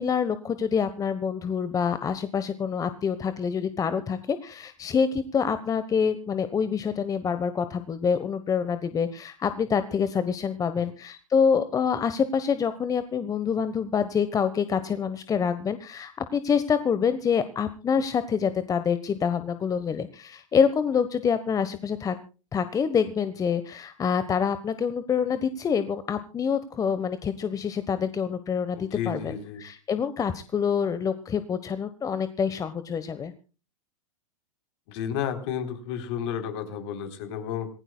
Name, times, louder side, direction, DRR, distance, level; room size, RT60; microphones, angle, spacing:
voice 1, 0.0-22.2 22.5-33.3, left 6 dB, 20° left, 12 dB, 1.2 m, -26 dB
voice 2, 28.8-29.6 34.9-37.7, left 8 dB, 50° left, 8 dB, 3.9 m, -32 dB
27.0 x 16.5 x 2.3 m, 0.35 s
hypercardioid pair, 110°, 18 cm